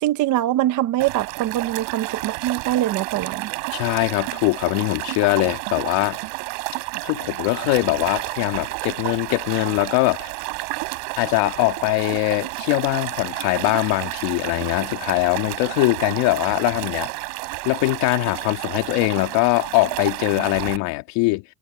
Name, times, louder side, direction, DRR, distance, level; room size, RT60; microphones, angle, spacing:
voice 1, 0.0-3.5, right 14 dB, 45° right, 1.1 m, -23 dB
sound 1, 1.0-20.8, right 31 dB, 70° right, 5.0 m, -31 dB
voice 2, 3.7-6.2 7.0-10.3 11.2-17.1 17.6-21.4, left 22 dB, 70° left, 2.2 m, -22 dB
cardioid pair, 155°, 43 cm